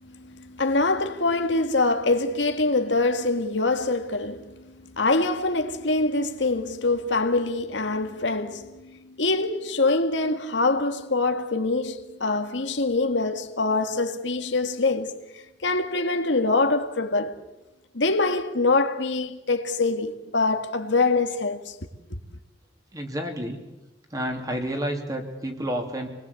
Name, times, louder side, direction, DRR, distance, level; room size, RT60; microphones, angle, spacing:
voice 1, 0.0-15.1 15.6-17.3 17.9-21.7, left 3 dB, 85° left, 1.9 m, -24 dB
voice 2, 22.9-23.6 24.1-26.1, equal, 20° right, 3.1 m, -30 dB
27.5 x 20.5 x 8.4 m
head